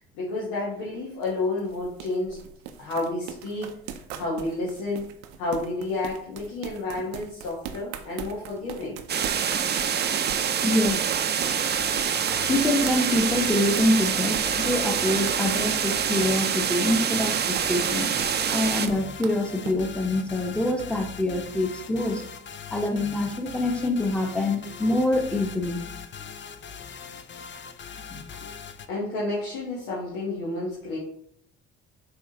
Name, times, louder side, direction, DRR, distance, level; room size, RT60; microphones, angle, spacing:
voice 1, 0.1-2.4 2.8-3.8 4.1-9.0 9.4-9.5 28.9-31.0, left 2 dB, 85° left, -6 dB, 1.3 m, -30 dB
sound 1, 0.7-19.8, right 8 dB, 85° right, 0.6 m, -40 dB
sound 2, 9.1-18.9, right 8 dB, 35° right, 0.5 m, -26 dB
voice 2, 10.6-11.0 12.5-18.1 18.5-22.2 22.7-25.8 28.1-28.2, left 1 dB, 5° left, 4 dB, 1.0 m, -25 dB
sound 3, 11.4-28.9, left 7 dB, 40° left, 0.5 m, -41 dB
5.5 x 3.2 x 2.9 m, 0.68 s
supercardioid pair, 65°, 30 cm